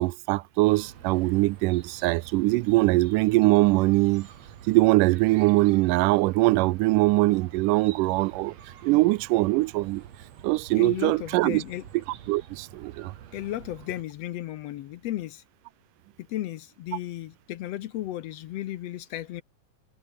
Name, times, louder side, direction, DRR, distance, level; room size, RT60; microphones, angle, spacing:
voice 1, 0.0-4.3 4.7-8.5 8.8-10.0 10.4-11.6 12.3-13.1, right 20 dB, 90° right, 2.2 m, -22 dB
Chirp tweet, 0.6-14.0, right 9 dB, 60° right, 2.8 m, -47 dB
voice 2, 10.7-11.8 13.3-15.4 16.2-19.4, left 14 dB, 70° left, 1.6 m, -34 dB
omnidirectional pair, 3.7 m